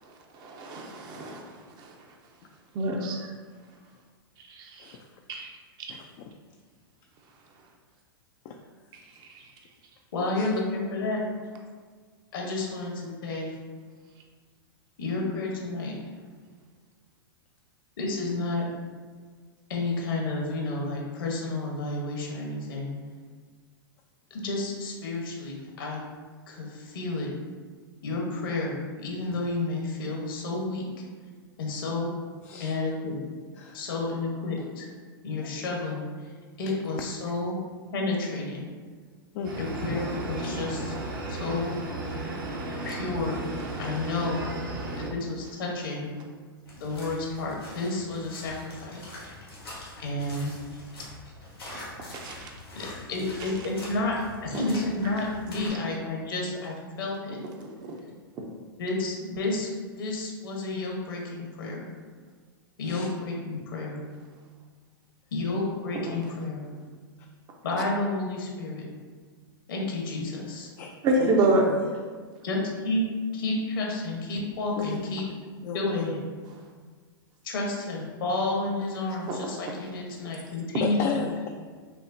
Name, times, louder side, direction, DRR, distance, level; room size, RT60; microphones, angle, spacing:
voice 1, 0.3-1.4 1.8-1.9 2.7-3.3 4.5-4.9 5.3-5.5 5.8-5.9 51.7-51.8 52.1-52.5 71.0-71.7 79.3-79.4, right 2 dB, 35° right, 1 dB, 0.6 m, -27 dB
voice 2, 5.9-6.3 8.4-8.6 10.4-10.5 32.4-32.7 33.6-33.8 35.4-35.5 39.3-39.5 41.5-41.6 42.0-42.2 48.5-48.7 62.8-63.1 70.8-70.9 71.2-71.8 74.8-75.0 75.6-76.2 80.8-81.5, left 6 dB, 45° left, 2 dB, 0.3 m, -34 dB
voice 3, 10.1-11.2 12.3-13.5 15.0-15.9 18.0-18.7 19.7-22.9 24.3-26.0 26.5-27.3 28.0-30.9 31.6-32.1 32.6-33.2 33.7-34.9 35.2-36.3 36.6-37.6 37.9-38.7 39.6-40.9 41.3-41.7 42.8-43.4 43.8-44.4 45.0-46.1 46.8-49.0 50.0-50.5 52.7-57.4 58.8-61.9 62.8-64.0 65.3-66.7 67.6-68.8 69.7-70.7 72.4-73.0 73.3-75.3 75.7-76.2 77.4-81.3, left 2 dB, 65° left, -1 dB, 1.0 m, -31 dB
sound 1, 39.4-45.1, right 2 dB, 65° right, 0.9 m, -34 dB
sound 2, 46.6-55.7, left 1 dB, 85° left, 1.4 m, -44 dB
5.8 x 2.0 x 2.6 m, 1.5 s
hypercardioid pair, 105°, 12 cm